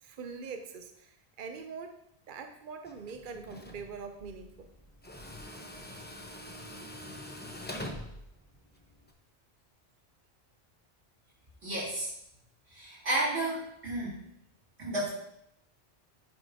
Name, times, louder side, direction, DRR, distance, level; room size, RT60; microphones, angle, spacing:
voice 1, 0.0-2.0 2.3-4.7 5.6-5.7 6.3-6.8, right 5 dB, 55° right, 6 dB, 0.8 m, -44 dB
Tools, 2.8-9.1, left 1 dB, 10° left, 0.7 m, -45 dB
voice 2, 11.6-12.1 12.7-14.2 14.8-15.1, right 1 dB, 85° right, -7 dB, 3.6 m, -32 dB
9.4 x 9.3 x 2.7 m, 0.76 s
omnidirectional pair, 1.1 m